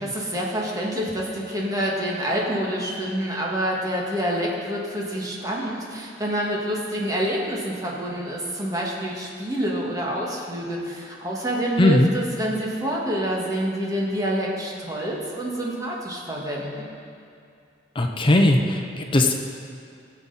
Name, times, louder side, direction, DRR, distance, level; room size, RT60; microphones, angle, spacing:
voice 1, 0.0-16.9, right 1 dB, 20° right, -3 dB, 1.7 m, -27 dB
voice 2, 11.8-12.1 18.0-19.3, left 1 dB, 30° left, 4 dB, 0.7 m, -18 dB
17.0 x 7.4 x 4.2 m, 2.4 s
head